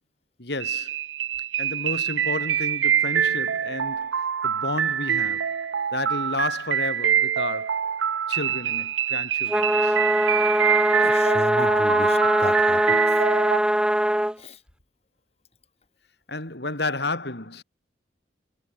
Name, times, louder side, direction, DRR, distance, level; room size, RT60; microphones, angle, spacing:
voice 1, 0.4-1.0 1.6-4.1 4.4-5.4 5.9-7.8 8.3-10.0 16.3-17.6, left 2 dB, 65° left, 4.5 m, -31 dB
sound 1, 0.6-13.6, right 9 dB, 90° right, 0.6 m, -25 dB
sound 2, 9.5-14.3, equal, 5° right, 1.3 m, -21 dB
voice 2, 11.0-13.2 14.4-14.6, left 1 dB, 35° left, 3.6 m, -35 dB
head